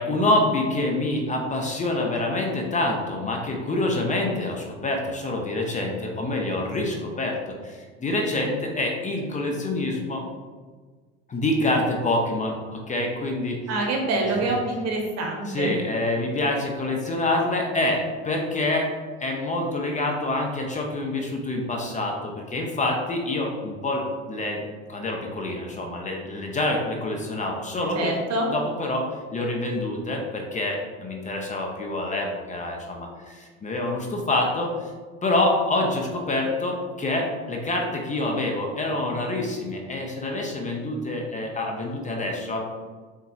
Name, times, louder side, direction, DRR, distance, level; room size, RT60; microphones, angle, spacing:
voice 1, 0.0-7.4 7.6-10.2 11.3-13.6 14.3-14.4 15.5-18.9 19.2-24.6 24.9-28.1 28.5-34.9 35.2-42.6, left 2 dB, 20° left, 1 dB, 0.7 m, -26 dB
voice 2, 13.7-15.7 27.9-28.5, right 2 dB, 50° right, 1 dB, 1.1 m, -26 dB
4.1 x 3.7 x 2.7 m, 1.5 s
hypercardioid pair, 85°, 33 cm